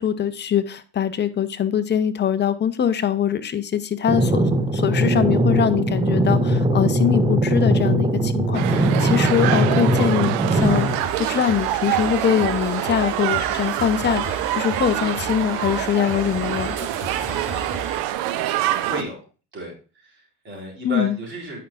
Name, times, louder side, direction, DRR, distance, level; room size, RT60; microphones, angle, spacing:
voice 1, 0.0-10.9 11.2-16.9 20.8-21.2, left 9 dB, 30° left, 12 dB, 0.7 m, -23 dB
sound 1, 4.1-11.0, right 1 dB, 15° right, 0.8 m, -20 dB
sound 2, 8.5-19.0, right 13 dB, 75° right, 0.7 m, -25 dB
sound 3, 10.5-18.1, left 2 dB, 45° left, 3.5 m, -37 dB
voice 2, 17.2-17.7 18.8-19.2 19.5-21.6, right 1 dB, 30° right, -3 dB, 4.3 m, -34 dB
9.3 x 5.6 x 2.4 m, 0.35 s
supercardioid pair, 95°, 37 cm